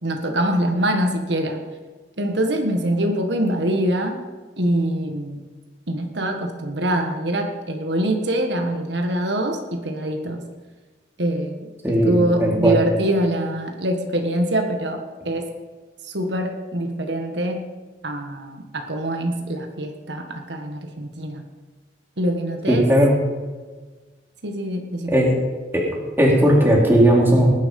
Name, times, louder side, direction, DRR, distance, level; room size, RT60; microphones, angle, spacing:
voice 1, 0.0-1.6 2.2-4.2 4.6-5.4 5.9-10.4 11.2-11.7 12.0-15.5 16.0-17.7 18.0-21.4 22.2-22.9 24.4-25.2, right 1 dB, 75° right, 4 dB, 1.6 m, -24 dB
voice 2, 11.8-12.8 22.7-23.2 25.1-25.3 25.7-25.9 26.2-27.5, right 1 dB, 10° right, -2 dB, 3.2 m, -16 dB
19.0 x 10.5 x 5.4 m, 1.3 s
head